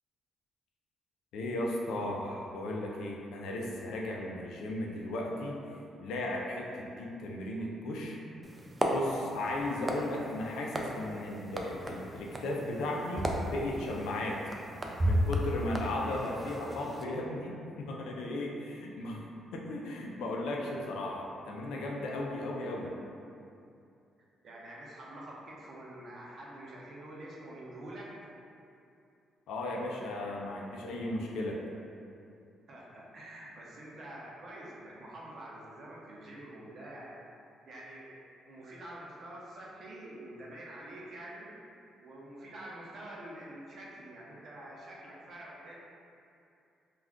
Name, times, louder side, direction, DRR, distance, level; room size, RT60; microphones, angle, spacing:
voice 1, 1.3-5.6 6.0-8.2 8.9-14.4 15.0-19.2 19.5-22.9 29.5-31.6, left 1 dB, 85° left, -1 dB, 0.4 m, -36 dB
sound 1, 8.4-17.0, equal, 25° right, 0.3 m, -35 dB
voice 2, 24.4-28.2 32.7-37.2 37.7-41.5 42.0-45.8, right 1 dB, 55° right, -5 dB, 0.7 m, -47 dB
2.3 x 2.3 x 3.5 m, 2.6 s
cardioid pair, 90°, 0 cm